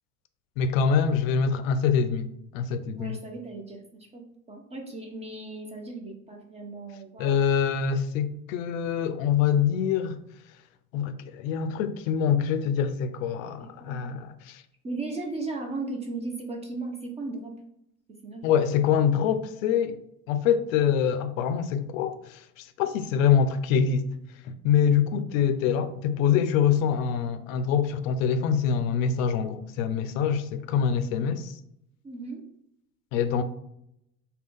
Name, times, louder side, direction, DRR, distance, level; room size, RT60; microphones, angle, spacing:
voice 1, 0.6-3.2 7.2-10.2 10.9-14.6 18.4-20.0 20.3-24.1 24.4-31.6 33.1-33.4, left 7 dB, 60° left, 0.5 m, -25 dB
voice 2, 2.9-7.4 13.6-14.0 14.8-17.5 18.2-18.4 32.0-32.4, right 3 dB, 15° right, 0.4 m, -36 dB
3.7 x 2.3 x 3.4 m
hypercardioid pair, 90°, 46 cm